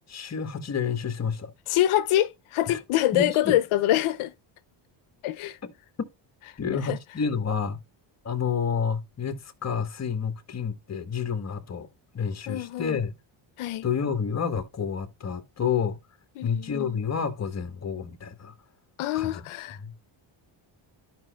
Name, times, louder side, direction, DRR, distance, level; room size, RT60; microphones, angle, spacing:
voice 1, 0.1-1.5 2.7-2.8 3.1-3.6 6.0-6.1 6.6-7.8 8.2-11.9 12.1-13.1 13.8-16.0 16.4-18.5 19.1-19.4 19.8-20.1, left 6 dB, 35° left, 1.3 m, -29 dB
voice 2, 1.7-4.3 5.2-5.6 6.7-7.0 12.5-13.0 13.6-13.8 16.4-17.0 19.0-19.8, left 13 dB, 85° left, 0.7 m, -25 dB
13.5 x 5.1 x 2.3 m
cardioid pair, 110°, 49 cm